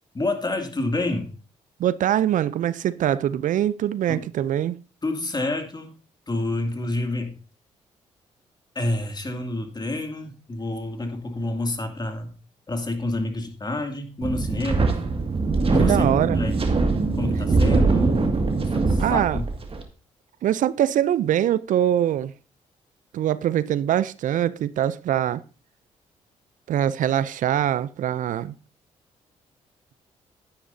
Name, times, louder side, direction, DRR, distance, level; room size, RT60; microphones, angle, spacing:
voice 1, 0.1-1.3 4.1-4.2 5.0-6.0 6.3-7.3 8.7-12.3 12.7-14.9 15.7-16.1 16.3-16.6 17.2-18.3 18.7-19.5, left 2 dB, 30° left, 2.3 m, -28 dB
voice 2, 1.8-4.8 15.8-16.4 19.0-19.4 20.4-22.3 23.1-25.4 26.7-28.6, right 11 dB, 65° right, 0.5 m, -23 dB
Wind, 14.2-19.8, right 3 dB, 40° right, 2.0 m, -22 dB
11.5 x 9.5 x 2.7 m
supercardioid pair, 50°, 14 cm